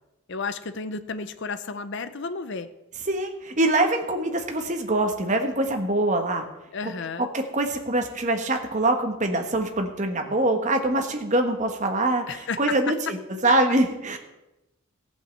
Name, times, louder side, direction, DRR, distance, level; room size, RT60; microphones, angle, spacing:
voice 1, 0.3-2.7 6.7-7.3 12.3-12.9, left 4 dB, 55° left, 11 dB, 0.6 m, -32 dB
voice 2, 3.1-6.5 6.8-6.9 7.2-13.2 13.4-14.2, right 2 dB, 35° right, 5 dB, 1.3 m, -24 dB
14.5 x 5.6 x 7.7 m, 0.96 s
head